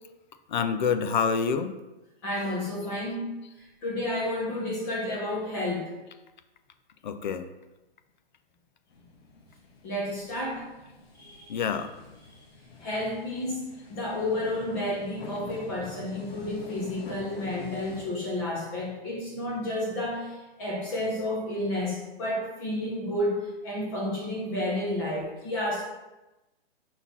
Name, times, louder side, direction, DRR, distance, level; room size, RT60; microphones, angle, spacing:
voice 1, 0.5-1.7 7.0-7.5 11.5-11.9, left 6 dB, 50° left, 10 dB, 0.5 m, -27 dB
voice 2, 2.2-5.9 9.8-10.7 11.1-11.6 12.3-12.4 12.8-25.8, left 1 dB, 20° left, -3 dB, 0.9 m, -31 dB
sound 1, 8.9-18.0, left 2 dB, 75° left, 1.4 m, -47 dB
5.8 x 4.0 x 4.1 m, 1.0 s
hypercardioid pair, 165°, 31 cm